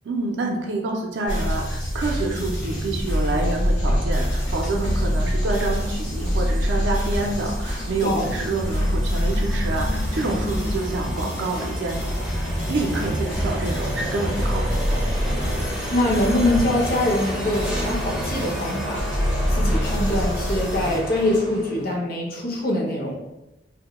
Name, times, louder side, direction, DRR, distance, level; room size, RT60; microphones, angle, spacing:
voice 1, 0.0-15.0, right 2 dB, 70° right, 1 dB, 0.4 m, -28 dB
sound 1, 1.3-21.0, equal, 85° left, 0.8 m, -26 dB
sound 2, 2.5-21.9, equal, 5° right, 0.5 m, -31 dB
voice 2, 15.9-19.0 19.5-23.1, left 1 dB, 55° left, -2 dB, 0.6 m, -23 dB
2.1 x 2.0 x 2.9 m, 0.94 s
head